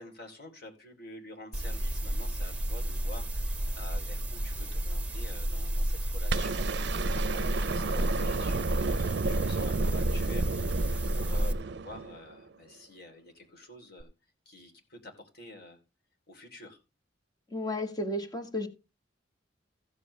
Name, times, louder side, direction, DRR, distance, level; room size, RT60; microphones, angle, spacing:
voice 1, 0.0-14.1 14.4-15.8 16.3-16.8, left 1 dB, 55° left, 3 dB, 3.3 m, -48 dB
sound 1, 1.5-11.5, equal, 5° right, 1.5 m, -31 dB
sound 2, 6.3-12.5 14.0-14.1, right 4 dB, 65° right, 0.5 m, -32 dB
voice 2, 17.5-18.7, left 1 dB, 20° left, 5 dB, 1.6 m, -33 dB
15.0 x 7.7 x 3.2 m, 0.28 s
head